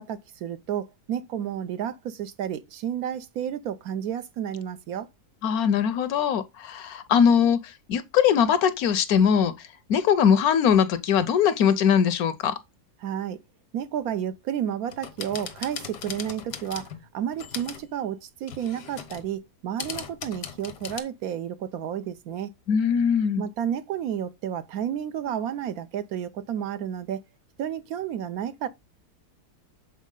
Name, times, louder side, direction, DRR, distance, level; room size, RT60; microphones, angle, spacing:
voice 1, 0.0-5.1 13.0-13.4 13.7-22.5 23.4-27.2 27.6-28.7, right 9 dB, 70° right, 1.0 m, -31 dB
voice 2, 5.4-12.5 22.7-23.4, left 7 dB, 70° left, 1.0 m, -21 dB
sound 1, 14.9-17.0 17.3-17.9 18.5-19.3 19.8-21.0, left 8 dB, 85° left, 1.5 m, -38 dB
7.2 x 4.1 x 3.7 m
omnidirectional pair, 1.7 m